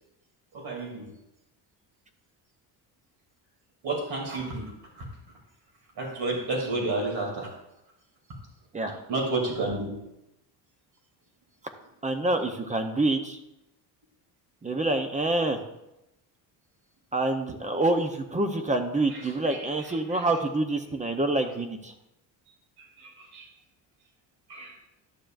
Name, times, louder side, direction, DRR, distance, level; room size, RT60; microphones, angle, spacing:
voice 1, 0.5-1.1 3.8-5.0 6.0-7.5 8.9-9.9 19.1-20.3 22.8-23.5 24.5-24.7, right 2 dB, 65° right, -1 dB, 2.8 m, -32 dB
voice 2, 12.0-13.4 14.6-15.6 17.1-21.9, right 2 dB, 15° right, 6 dB, 0.7 m, -27 dB
12.0 x 6.8 x 2.5 m, 0.87 s
cardioid pair, 120°, 42 cm